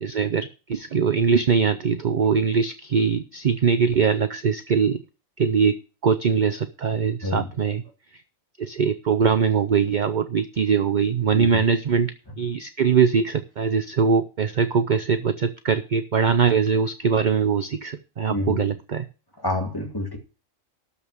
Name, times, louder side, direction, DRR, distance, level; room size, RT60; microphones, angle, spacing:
voice 1, 0.0-5.0 5.4-5.8 6.0-7.8 8.6-12.1 12.4-19.1, right 6 dB, 50° right, 0.6 m, -22 dB
voice 2, 11.3-11.6 18.3-18.6 19.4-20.2, left 2 dB, 15° left, 2.2 m, -27 dB
12.5 x 5.7 x 6.3 m
omnidirectional pair, 1.4 m